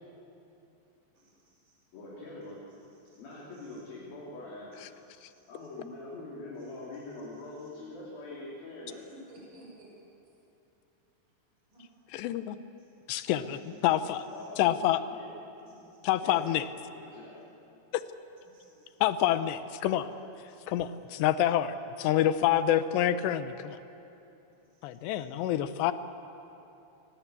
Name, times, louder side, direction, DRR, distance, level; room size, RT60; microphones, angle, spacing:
voice 1, 1.1-1.8 3.0-3.2 3.7-3.8 5.1-5.5 6.6-6.7 7.6-7.7 8.9-9.9 11.7-11.9 13.5-13.7 14.3-14.5 15.6-16.0 18.4-18.9 24.7-25.3, right 1 dB, 25° right, -4 dB, 7.0 m, -56 dB
voice 2, 1.9-2.6 3.2-4.9 5.5-9.1 14.3-14.6 15.1-15.3 16.2-16.6 17.0-17.5 25.6-25.7, left 2 dB, 55° left, -6 dB, 4.7 m, -44 dB
voice 3, 12.1-12.6 13.1-14.2 14.6-15.0 16.0-16.6 19.0-20.1 20.7-23.8 24.8-25.9, left 12 dB, 80° left, 12 dB, 2.9 m, -27 dB
27.5 x 18.5 x 8.3 m, 2.8 s
omnidirectional pair, 5.2 m